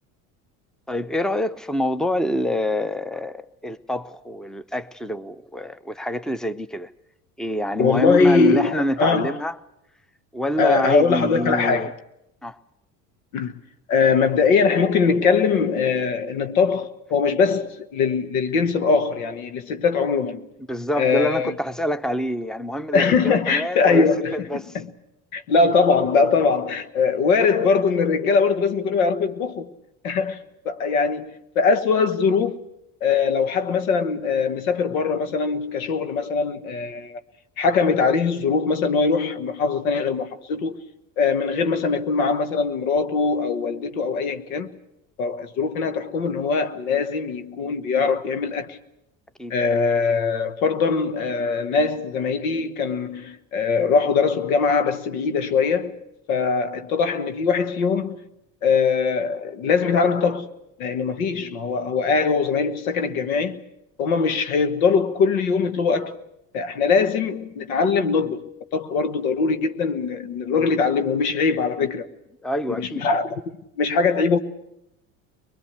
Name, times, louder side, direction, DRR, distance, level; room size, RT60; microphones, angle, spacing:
voice 1, 0.9-6.9 7.4-9.6 10.3-11.9 12.4-12.6 20.7-24.1 24.3-24.7 49.4-49.6 72.4-73.1, equal, ahead, 0.8 m, -26 dB
voice 2, 7.8-9.4 10.6-11.9 13.3-13.5 13.9-20.5 21.0-21.5 22.9-24.9 25.3-29.7 30.0-32.6 33.0-37.2 37.6-40.8 41.2-44.7 45.2-48.8 49.5-56.0 56.3-58.2 58.6-60.5 60.8-63.6 64.0-66.2 66.5-68.4 68.7-72.1 72.8-74.4, left 5 dB, 90° left, 1.4 m, -21 dB
23.0 x 21.0 x 8.2 m
supercardioid pair, 80°, 41 cm